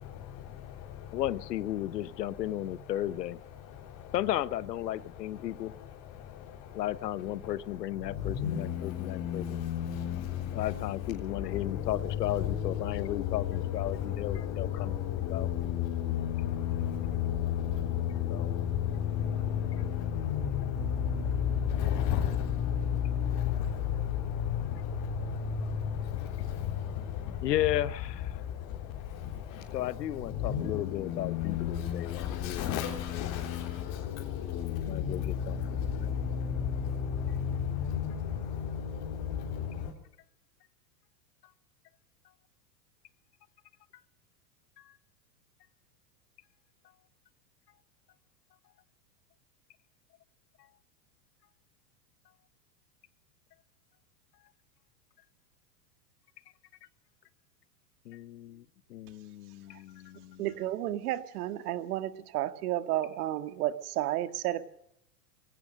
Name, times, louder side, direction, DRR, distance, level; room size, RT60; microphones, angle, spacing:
voice 1, 0.0-1.3 1.8-4.2 4.9-27.6 28.2-39.9, left 9 dB, 40° left, 3.8 m, -33 dB
voice 2, 1.1-3.4 4.1-5.7 6.7-9.6 10.5-14.9 15.3-15.5 18.3-18.6 27.4-28.4 29.7-32.6 34.8-36.1 58.1-58.6 58.9-60.4, left 13 dB, 85° left, 1.1 m, -34 dB
voice 3, 60.4-64.7, right 14 dB, 65° right, 1.8 m, -32 dB
23.0 x 17.0 x 6.6 m
hypercardioid pair, 125°, 48 cm